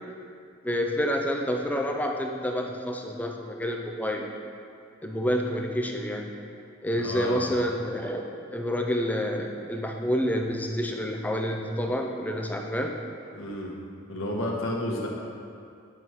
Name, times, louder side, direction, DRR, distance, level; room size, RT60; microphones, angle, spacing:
voice 1, 0.6-4.3 5.0-6.3 6.8-13.0 14.9-15.0, equal, 10° left, 1 dB, 0.5 m, -28 dB
voice 2, 6.9-7.5 13.3-13.7 14.1-15.1, left 1 dB, 75° left, -2 dB, 1.2 m, -31 dB
9.0 x 3.2 x 5.5 m, 2.4 s
head